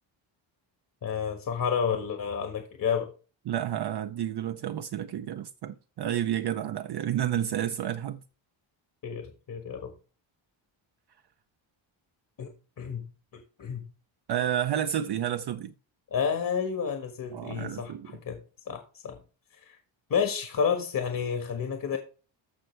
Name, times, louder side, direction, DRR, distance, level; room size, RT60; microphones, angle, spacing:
voice 1, 1.0-3.1 9.0-9.9 12.4-12.5 12.8-13.1 13.6-13.9 16.1-17.9 18.2-18.4 18.7-19.2 19.5-19.8 20.1-22.0, left 7 dB, 45° left, 1.5 m, -30 dB
voice 2, 3.5-8.2 14.3-15.7 17.3-18.2, right 10 dB, 55° right, 0.6 m, -30 dB
14.0 x 5.6 x 3.2 m
cardioid pair, 120°, 47 cm